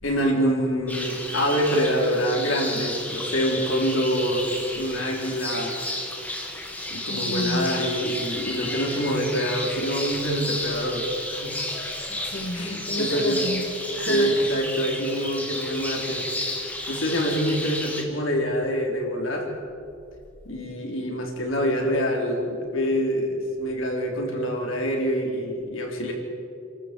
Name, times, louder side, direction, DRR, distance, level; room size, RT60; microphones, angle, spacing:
voice 1, 0.0-5.8 6.9-11.7 12.5-13.4 14.1-16.3 16.9-19.5 20.5-26.1, equal, 90° left, 1 dB, 4.0 m, -26 dB
sound 1, 0.9-18.0, left 1 dB, 10° left, 2.1 m, -32 dB
voice 2, 7.1-7.7 12.1-14.3, equal, 60° left, -1 dB, 2.3 m, -31 dB
28.0 x 13.5 x 7.8 m, 2.5 s
head